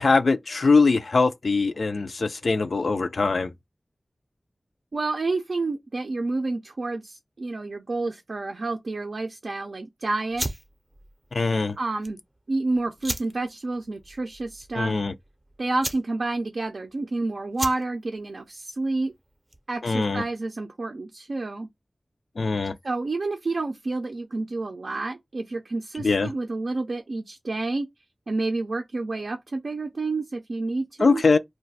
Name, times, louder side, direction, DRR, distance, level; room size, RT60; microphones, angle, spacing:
voice 1, 0.0-3.5 11.3-11.8 14.7-15.1 19.8-20.2 22.4-22.7 26.0-26.3 31.0-31.4, left 4 dB, 80° left, 0.3 m, -22 dB
voice 2, 4.9-10.5 11.8-12.2 12.5-15.0 15.6-19.1 19.7-21.7 22.8-27.9 28.3-31.2, right 3 dB, 80° right, 0.4 m, -29 dB
sound 1, 10.3-19.8, right 1 dB, 30° right, 0.5 m, -37 dB
2.4 x 2.2 x 3.9 m
wide cardioid pair, 70°, 0 cm